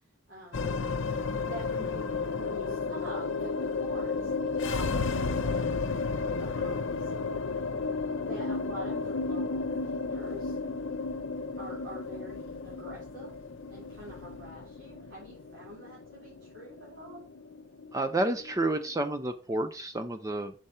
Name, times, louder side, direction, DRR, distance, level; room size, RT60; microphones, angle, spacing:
voice 1, 0.3-0.8 1.4-7.1 8.2-10.6 11.6-13.4 13.7-17.3, equal, 75° right, -6 dB, 3.5 m, -46 dB
sound 1, 0.5-19.0, left 4 dB, 75° left, 0.6 m, -33 dB
voice 2, 17.9-20.5, right 2 dB, 15° right, 6 dB, 0.5 m, -30 dB
6.6 x 5.1 x 4.2 m, 0.37 s
head